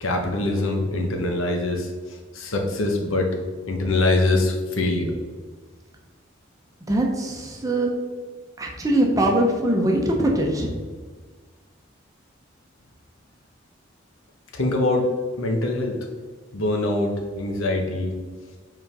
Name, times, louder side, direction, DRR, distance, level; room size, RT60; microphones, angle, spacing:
voice 1, 0.0-1.9 2.3-3.4 3.7-5.1 14.5-15.1 15.4-16.0 16.5-18.2, left 2 dB, 90° left, 3 dB, 1.0 m, -23 dB
voice 2, 6.9-7.9 8.6-10.7, right 1 dB, 15° right, 0 dB, 0.8 m, -22 dB
5.1 x 3.8 x 5.3 m, 1.5 s
head